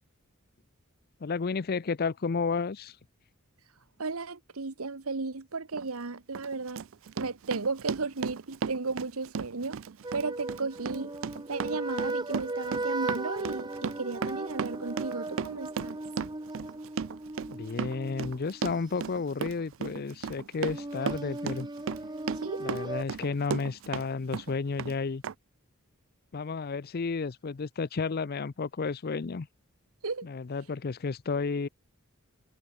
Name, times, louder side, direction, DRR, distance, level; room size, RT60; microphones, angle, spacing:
voice 1, 1.2-3.0 17.5-21.7 22.6-25.2 26.3-29.5 30.2-31.7, left 4 dB, 45° left, 0.5 m, -32 dB
voice 2, 4.0-6.8 7.2-9.8 10.1-11.1 11.5-16.0 22.4-22.6 30.0-30.3, right 3 dB, 75° right, 1.3 m, -34 dB
Run, 5.7-5.9 6.3-24.1 24.3-24.9 25.2-25.3, right 6 dB, 60° right, 0.4 m, -35 dB
sound 1, 10.0-19.1 20.6-23.0, right 2 dB, 20° right, 1.0 m, -37 dB
head